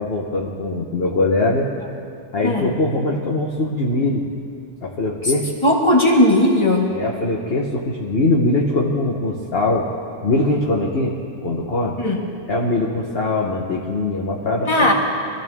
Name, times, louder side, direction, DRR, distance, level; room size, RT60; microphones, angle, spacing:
voice 1, 0.0-1.7 2.3-4.2 4.8-5.5 6.9-9.9 10.2-11.2 11.4-12.0 12.5-14.9, left 2 dB, 35° left, -2 dB, 1.1 m, -21 dB
voice 2, 5.6-6.9 12.0-12.2 14.7-14.9, left 1 dB, 15° left, -1 dB, 1.8 m, -16 dB
25.0 x 15.0 x 3.7 m, 2.4 s
omnidirectional pair, 2.3 m